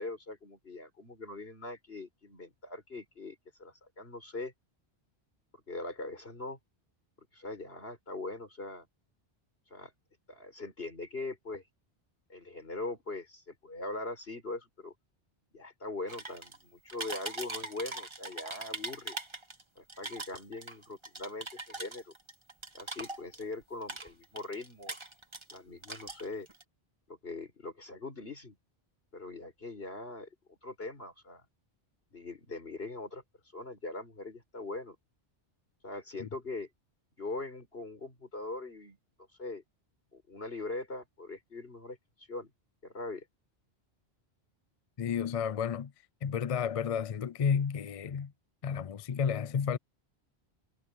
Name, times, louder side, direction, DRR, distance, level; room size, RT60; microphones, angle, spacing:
voice 1, 0.0-4.5 5.5-6.6 7.3-8.9 9.7-9.9 10.3-11.6 12.3-14.9 15.5-19.2 19.8-22.1 22.7-25.0 25.5-26.5 27.1-28.6 29.1-31.4 32.1-33.2 33.5-35.0 35.8-36.7 37.2-39.0 39.4-39.6 40.1-42.5 42.8-43.3, left 2 dB, 65° left, 5.3 m, -41 dB
sound 1, 16.1-16.6 16.9-19.6 19.9-23.5 23.8-25.6 25.8-26.6, right 2 dB, 25° right, 1.5 m, -41 dB
voice 2, 45.0-45.9 46.2-48.3 48.6-49.8, left 7 dB, 45° left, 0.5 m, -31 dB
omnidirectional pair, 1.1 m